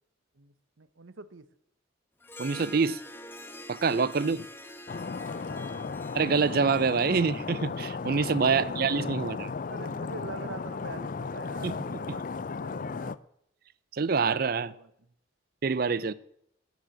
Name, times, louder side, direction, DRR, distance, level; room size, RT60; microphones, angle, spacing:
voice 1, 0.3-1.5 4.2-4.3 5.5-5.9 8.5-9.2 9.7-13.2 14.1-14.9 16.0-16.1, right 3 dB, 85° right, 0.9 m, -46 dB
Harp, 2.2-7.9, left 1 dB, 10° left, 1.0 m, -46 dB
voice 2, 2.4-3.0 3.7-4.4 6.1-9.5 11.6-12.0 13.9-14.7 15.6-16.1, right 5 dB, 50° right, 0.5 m, -26 dB
Stream, 4.9-13.2, left 4 dB, 45° left, 0.4 m, -35 dB
12.5 x 7.2 x 8.8 m
head